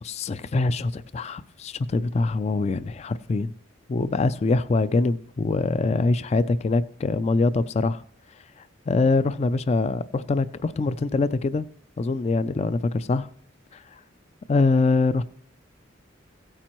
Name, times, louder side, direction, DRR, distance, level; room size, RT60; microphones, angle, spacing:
voice 1, 0.0-3.5 3.9-8.0 8.9-11.7 12.0-13.3 13.7-14.0 14.5-15.2, left 3 dB, 35° left, 14 dB, 0.3 m, -24 dB
16.0 x 8.7 x 3.0 m, 0.63 s
head